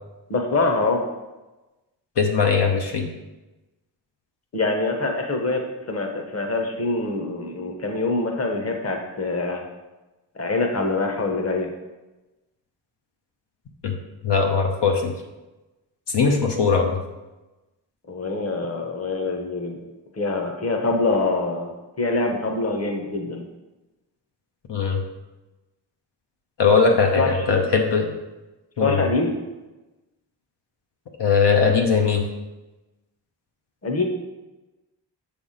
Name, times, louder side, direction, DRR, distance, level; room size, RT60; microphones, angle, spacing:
voice 1, 0.3-1.0 4.5-5.6 5.9-9.7 10.3-11.7 18.1-19.8 20.1-23.4 27.1-27.6 28.8-29.3 33.8-34.0, left 3 dB, 35° left, 2 dB, 1.1 m, -24 dB
voice 2, 2.2-3.0 13.8-13.9 14.2-15.1 16.1-17.0 24.7-25.0 26.6-28.1 28.8-29.1 31.2-32.2, left 5 dB, 70° left, 1 dB, 0.9 m, -20 dB
7.1 x 3.5 x 5.7 m, 1.1 s
wide cardioid pair, 95°, 44 cm